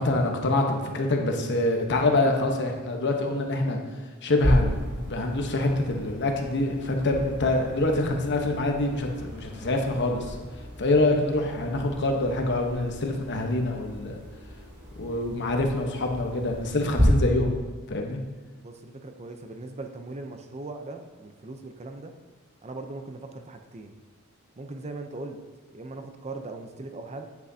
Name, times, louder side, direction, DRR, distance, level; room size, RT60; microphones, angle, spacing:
voice 1, 0.0-3.8 4.2-10.4 10.8-14.2 15.0-17.5 17.9-18.2, left 2 dB, 55° left, 3 dB, 1.0 m, -25 dB
sound 1, 4.4-17.0, equal, 50° right, 2.6 m, -34 dB
voice 2, 18.6-22.1 22.6-23.9 24.6-25.4 25.7-27.3, right 2 dB, 30° right, 6 dB, 0.6 m, -39 dB
9.0 x 8.3 x 2.8 m, 1.4 s
head